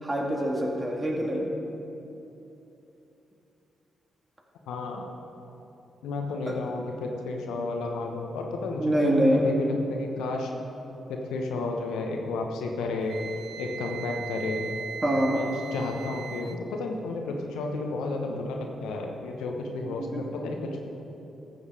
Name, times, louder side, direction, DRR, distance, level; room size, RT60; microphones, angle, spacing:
voice 1, 0.0-1.5 6.4-6.6 8.8-9.6 15.0-15.4 19.8-20.2, right 1 dB, 25° right, -1 dB, 2.3 m, -25 dB
voice 2, 4.7-5.1 6.0-10.5 11.1-13.2 13.6-14.6 15.2-20.9, left 3 dB, 80° left, 2 dB, 1.0 m, -32 dB
Wind instrument woodwind instrument, 13.1-16.6, right 7 dB, 65° right, 0.5 m, -38 dB
14.0 x 7.1 x 4.9 m, 2.9 s
hypercardioid pair, 40°, 0 cm